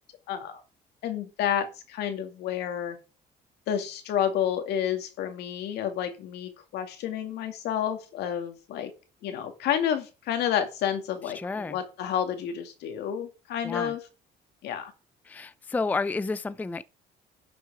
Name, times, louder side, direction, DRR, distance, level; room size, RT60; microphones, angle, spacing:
voice 1, 0.3-0.6 1.0-3.0 3.7-8.9 9.2-14.0 14.6-14.9, left 9 dB, 80° left, 2.2 m, -30 dB
voice 2, 11.3-11.8 13.6-13.9 15.2-16.8, left 3 dB, 10° left, 0.4 m, -30 dB
11.0 x 6.3 x 4.8 m
cardioid pair, 110°, 17 cm